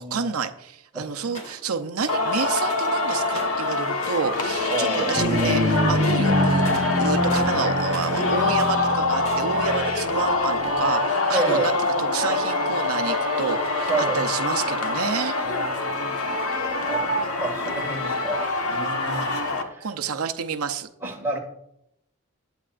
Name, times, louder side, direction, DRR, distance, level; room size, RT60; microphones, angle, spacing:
voice 1, 0.0-11.7 12.0-15.4 19.8-20.9, right 5 dB, 80° right, 8 dB, 0.7 m, -29 dB
voice 2, 0.9-1.3 4.6-5.1 11.3-11.7 13.9-14.2 15.4-16.1 16.4-16.5 16.8-19.9 21.0-21.4, right 3 dB, 10° right, -1 dB, 2.0 m, -30 dB
sound 1, 1.3-1.6 2.0-2.2 2.7-3.0 3.3-4.4 4.7-5.0 5.3-5.7 6.0-8.2 8.5-9.5, left 1 dB, 30° left, 2.7 m, -39 dB
Singing, 2.1-19.6, left 2 dB, 80° left, 1.4 m, -25 dB
sound 2, 5.1-10.9, equal, 25° right, 4.0 m, -26 dB
20.0 x 7.9 x 2.5 m, 0.77 s
head